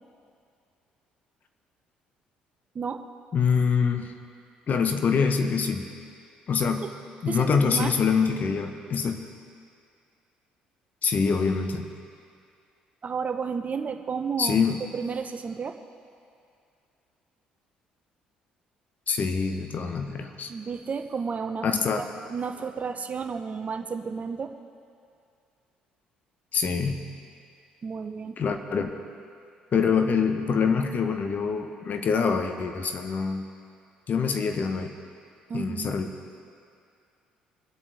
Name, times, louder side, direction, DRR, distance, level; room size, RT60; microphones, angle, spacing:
voice 1, 3.3-4.1 4.7-5.9 6.5-6.8 7.2-9.3 11.0-11.9 14.4-14.8 19.1-20.5 21.6-22.1 26.5-27.0 28.4-29.0 29.7-33.5 34.1-34.9 35.5-36.1, left 5 dB, 45° left, 6 dB, 1.0 m, -25 dB
voice 2, 7.3-8.0 13.0-14.6 14.9-15.8 20.5-21.7 22.0-24.5 27.8-28.4 35.5-35.9, right 5 dB, 35° right, 7 dB, 0.8 m, -32 dB
24.5 x 8.3 x 3.5 m, 2.4 s
figure-of-eight pair, 50°, 4 cm